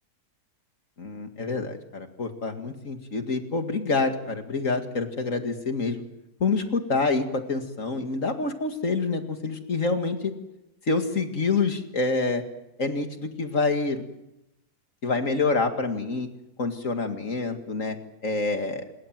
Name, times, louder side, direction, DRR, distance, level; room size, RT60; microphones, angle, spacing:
voice 1, 1.0-6.0 6.4-10.3 10.9-12.4 12.8-14.0 15.0-16.3 16.6-18.0 18.2-18.8, left 3 dB, 55° left, 6 dB, 2.5 m, -27 dB
26.0 x 21.5 x 7.6 m, 0.90 s
omnidirectional pair, 1.7 m